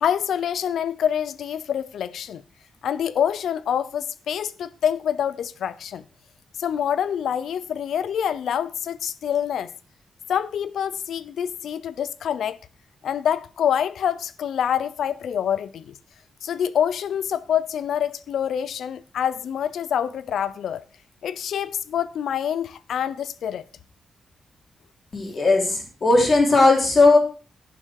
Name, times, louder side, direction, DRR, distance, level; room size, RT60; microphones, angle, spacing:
voice 1, 0.0-2.4 2.8-6.0 6.6-9.7 10.3-12.6 13.0-15.9 16.4-20.8 21.2-23.6, left 9 dB, 80° left, 0.7 m, -26 dB
voice 2, 25.1-27.2, left 3 dB, 35° left, 3.8 m, -17 dB
11.0 x 10.5 x 4.7 m
wide cardioid pair, 180°, 0 cm